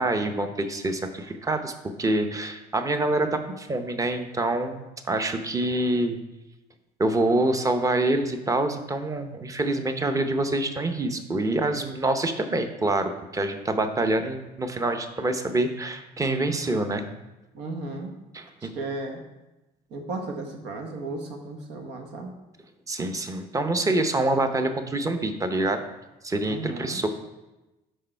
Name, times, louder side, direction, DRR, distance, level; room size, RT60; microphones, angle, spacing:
voice 1, 0.0-1.7 2.0-6.2 7.0-17.1 18.3-18.7 22.9-25.9 26.2-27.1, right 2 dB, 20° right, 7 dB, 0.7 m, -26 dB
voice 2, 17.5-18.1 18.6-19.2 19.9-22.3 26.4-27.0, right 2 dB, 90° right, 3 dB, 1.3 m, -35 dB
6.4 x 5.4 x 4.5 m, 1.0 s
cardioid pair, 110°, 17 cm